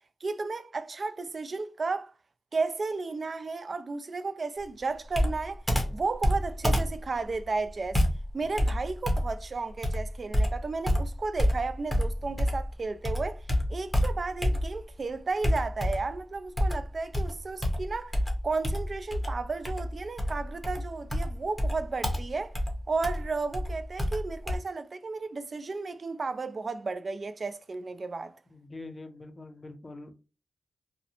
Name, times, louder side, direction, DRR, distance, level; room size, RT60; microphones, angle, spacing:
voice 1, 0.2-2.1 2.5-5.6 5.9-8.0 8.3-18.2 18.4-22.5 22.9-28.3, right 3 dB, 50° right, 0.3 m, -33 dB
Computer keyboard, 5.1-12.7 13.0-14.9 15.4-16.2 16.6-24.6, equal, 5° left, 0.8 m, -28 dB
voice 2, 28.5-30.1, left 2 dB, 35° left, 0.5 m, -44 dB
2.5 x 2.1 x 2.8 m
cardioid pair, 65°, 0 cm